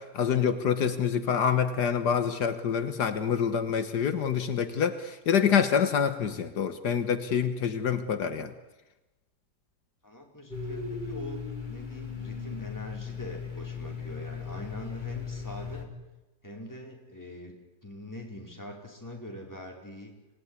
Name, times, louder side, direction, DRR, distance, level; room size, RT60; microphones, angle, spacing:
voice 1, 0.0-8.5, left 7 dB, 80° left, 9 dB, 1.9 m, -26 dB
voice 2, 10.0-15.9 16.4-17.5 17.8-20.1, left 1 dB, 10° left, 0 dB, 4.7 m, -43 dB
Domestic sounds home sounds, 10.5-15.9, left 6 dB, 25° left, 3.1 m, -37 dB
26.0 x 19.0 x 9.8 m, 1.1 s
omnidirectional pair, 1.7 m